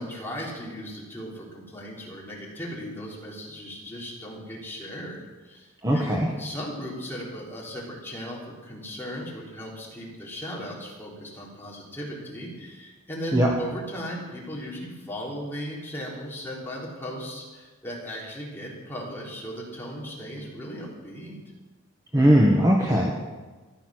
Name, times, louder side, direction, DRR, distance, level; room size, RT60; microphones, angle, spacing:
voice 1, 0.0-21.4, equal, 10° left, -5 dB, 3.7 m, -37 dB
voice 2, 5.8-6.3 13.3-13.5 22.1-23.1, equal, 15° right, -2 dB, 1.4 m, -19 dB
14.5 x 11.5 x 6.5 m, 1.3 s
head